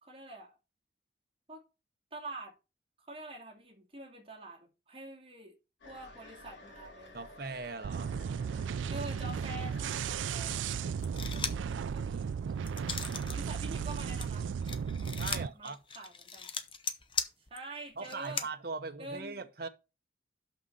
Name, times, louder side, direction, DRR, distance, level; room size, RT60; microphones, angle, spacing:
voice 1, 0.0-0.6 1.5-1.6 2.1-2.5 3.1-5.6 5.8-7.3 8.9-10.7 11.3-14.5 15.2-16.5 17.4-18.5 19.0-19.4, right 2 dB, 30° right, 2.3 m, -46 dB
sound 1, 5.8-11.5, left 1 dB, 75° left, 2.8 m, -54 dB
voice 2, 7.1-8.1 15.1-15.8 18.0-19.7, right 4 dB, 55° right, 0.8 m, -40 dB
sound 2, 7.8-15.5, right 6 dB, 90° right, 0.3 m, -35 dB
sound 3, 11.0-11.7 12.2-13.4 13.7-18.5, left 6 dB, 25° left, 0.7 m, -38 dB
6.3 x 5.8 x 5.5 m
head